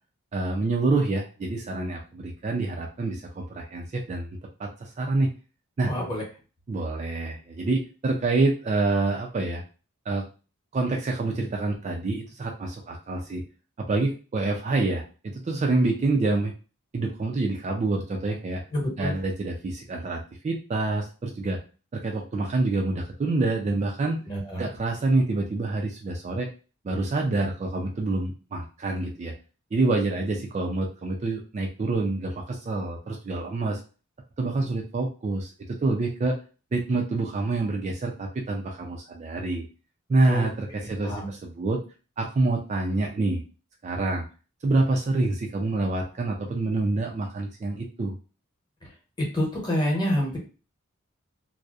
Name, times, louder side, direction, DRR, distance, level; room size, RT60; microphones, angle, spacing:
voice 1, 0.3-5.3 5.8-5.9 6.7-9.6 10.1-10.2 10.7-13.4 13.9-15.0 15.3-16.5 16.9-18.6 19.0-21.6 21.9-24.2 24.6-26.5 26.8-29.3 29.7-33.8 34.4-36.4 36.7-39.7 40.1-41.8 42.2-43.4 43.8-44.2 44.6-48.2, right 2 dB, 30° right, 1 dB, 0.3 m, -27 dB
voice 2, 5.9-6.2 18.7-19.1 24.3-24.6 40.2-40.5 41.0-41.3 49.3-50.4, equal, 20° left, -3 dB, 0.9 m, -27 dB
2.6 x 2.0 x 2.3 m, 0.34 s
head